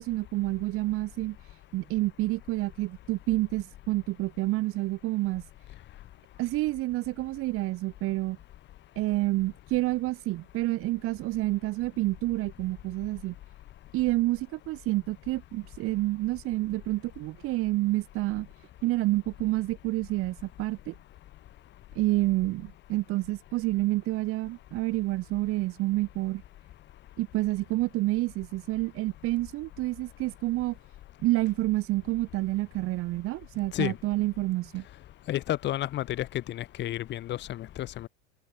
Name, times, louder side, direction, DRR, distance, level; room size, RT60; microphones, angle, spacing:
voice 1, 0.0-5.5 6.4-8.4 9.0-13.3 13.9-18.5 18.8-20.9 21.9-26.4 27.2-30.8 31.2-34.8, right 18 dB, 35° right, 5.9 m, -29 dB
voice 2, 35.3-38.1, left 13 dB, 25° left, 6.7 m, -31 dB
supercardioid pair, 175°, 40 cm